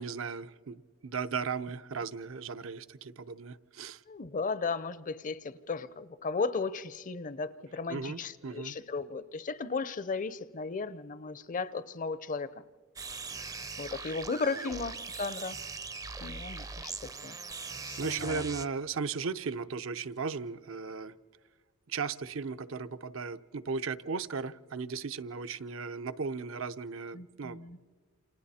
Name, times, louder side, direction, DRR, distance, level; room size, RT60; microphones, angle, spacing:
voice 1, 0.0-4.0 7.9-8.8 14.5-14.7 18.0-21.1 21.9-27.6, right 5 dB, 70° right, 11 dB, 0.7 m, -36 dB
voice 2, 4.1-12.5 13.4-15.6 16.2-16.9 17.2-17.4 17.9-18.4 27.1-27.8, left 4 dB, 40° left, 16 dB, 0.6 m, -35 dB
sound 1, 13.0-18.7, right 4 dB, 15° right, 0.5 m, -41 dB
28.5 x 27.5 x 4.3 m, 1.5 s
head